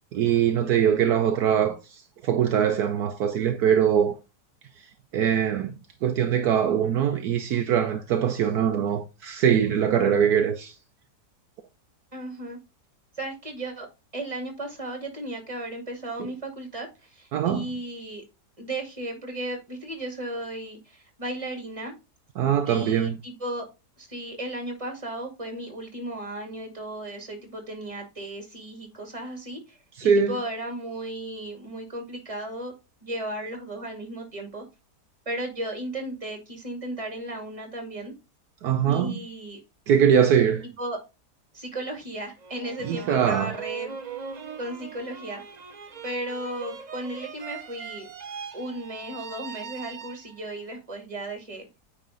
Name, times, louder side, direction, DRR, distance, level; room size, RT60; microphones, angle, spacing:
voice 1, 0.1-4.2 5.1-5.7 6.0-10.7 17.3-17.7 22.4-23.2 30.0-30.4 38.6-39.2 39.9-40.6 42.8-43.5, right 8 dB, 70° right, 1.2 m, -22 dB
voice 2, 12.1-12.6 13.1-13.9 14.1-18.2 18.6-22.0 22.6-23.7 24.0-32.7 33.0-34.6 35.3-38.1 38.8-39.6 40.6-41.0 41.5-43.9 44.6-45.4 46.0-48.1 48.5-51.7, right 1 dB, 20° right, 2.5 m, -35 dB
sound 1, 42.4-50.6, right 7 dB, 45° right, 0.5 m, -40 dB
9.1 x 4.2 x 3.8 m
omnidirectional pair, 1.8 m